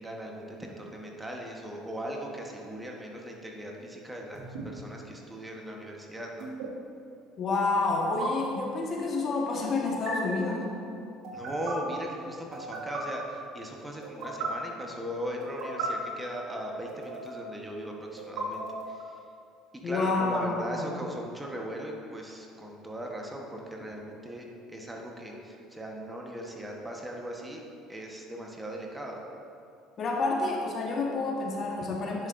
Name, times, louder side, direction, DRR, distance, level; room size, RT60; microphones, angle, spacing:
voice 1, 0.0-6.5 11.3-19.2 19.8-27.6 27.9-29.2, equal, 10° right, 0 dB, 1.1 m, -38 dB
sound 1, 4.3-4.6 6.4-6.7 8.0-8.3 9.9-10.1 11.2-11.7 12.5-13.0 14.0-14.5 15.4-15.9 16.9-17.5 18.2-19.0, right 4 dB, 70° right, 1.4 m, -37 dB
voice 2, 7.4-10.7 19.8-20.8 30.0-32.3, left 3 dB, 45° left, -1 dB, 1.2 m, -29 dB
10.5 x 5.5 x 2.6 m, 2.6 s
hypercardioid pair, 70°, 0 cm